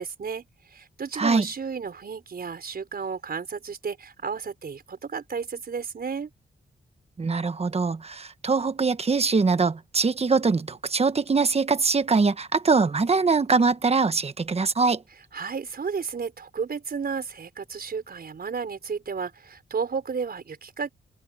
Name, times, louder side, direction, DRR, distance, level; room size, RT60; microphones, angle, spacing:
voice 1, 0.0-6.3 15.3-20.9, right 5 dB, 55° right, 5.1 m, -33 dB
voice 2, 1.1-1.5 7.2-15.0, right 4 dB, 35° right, 1.1 m, -23 dB
wide cardioid pair, 115°, 19 cm